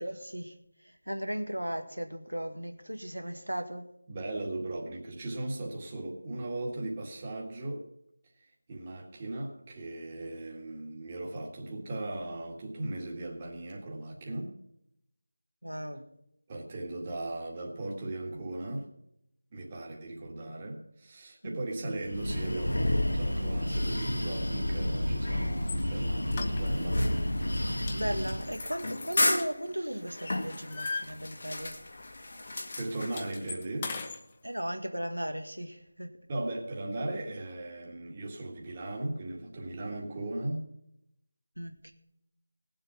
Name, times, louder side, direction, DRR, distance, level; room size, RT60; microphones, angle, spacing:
voice 1, 0.0-3.8 15.6-16.1 21.4-22.0 27.9-31.8 34.4-36.2 41.6-41.9, equal, 80° right, 6 dB, 1.7 m, -37 dB
voice 2, 4.1-7.9 8.7-14.5 16.5-18.9 19.5-27.0 32.8-34.0 36.3-40.7, right 2 dB, 20° right, -1 dB, 1.9 m, -37 dB
Breathing, 22.0-28.6, left 1 dB, 70° left, 2.2 m, -30 dB
sound 1, 25.6-25.8 26.3-27.0 27.4-27.6 27.9-29.9 30.3-31.7 32.0-32.2 32.5-34.2, left 4 dB, 20° left, 0.9 m, -40 dB
sound 2, 26.9-33.3, left 2 dB, 45° left, 1.6 m, -34 dB
17.5 x 7.7 x 5.9 m, 0.76 s
figure-of-eight pair, 165°, 0 cm